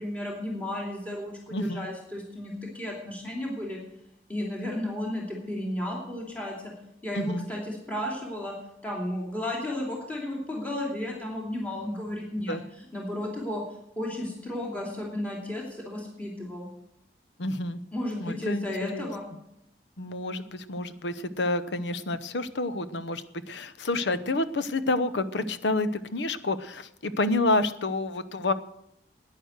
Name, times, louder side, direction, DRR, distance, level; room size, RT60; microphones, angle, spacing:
voice 1, 0.0-3.8 4.3-6.7 7.0-8.5 8.8-12.6 12.9-13.6 14.0-16.7 17.9-19.3, left 1 dB, 10° left, -2 dB, 2.8 m, -33 dB
voice 2, 1.5-1.9 7.1-7.5 12.5-12.6 17.4-17.8 18.2-18.7 18.9-19.1 20.0-28.5, left 2 dB, 85° left, 13 dB, 0.8 m, -29 dB
11.0 x 9.8 x 7.9 m, 0.79 s
head